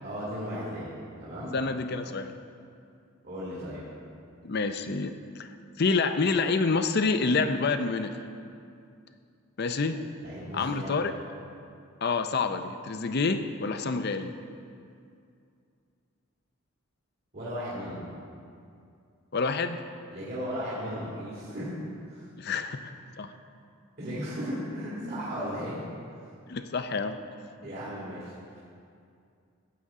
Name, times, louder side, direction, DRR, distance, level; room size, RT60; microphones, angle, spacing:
voice 1, 0.0-0.9 1.2-1.6 3.2-3.8 10.2-10.9 17.3-18.0 20.1-21.8 22.1-22.3 24.0-25.8 27.6-28.3, equal, 50° right, -8 dB, 2.3 m, -35 dB
voice 2, 1.5-2.4 4.4-5.5 5.8-8.1 9.6-10.0 10.5-11.2 12.0-14.3 19.3-19.8 22.4-23.3 26.5-27.2, left 4 dB, 50° left, 9 dB, 0.5 m, -28 dB
14.0 x 9.3 x 3.7 m, 2.4 s
head